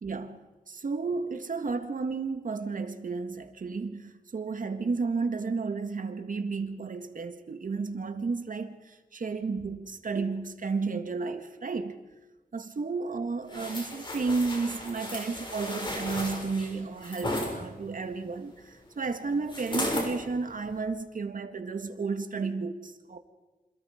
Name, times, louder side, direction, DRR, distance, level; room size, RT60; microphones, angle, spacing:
voice 1, 0.0-12.0 12.5-23.2, right 4 dB, 65° right, 1.8 m, -32 dB
sound 1, 13.5-17.5 19.5-20.1 20.6-20.8, left 1 dB, 35° left, 6.3 m, -34 dB
27.5 x 27.0 x 5.1 m
wide cardioid pair, 130°, 15 cm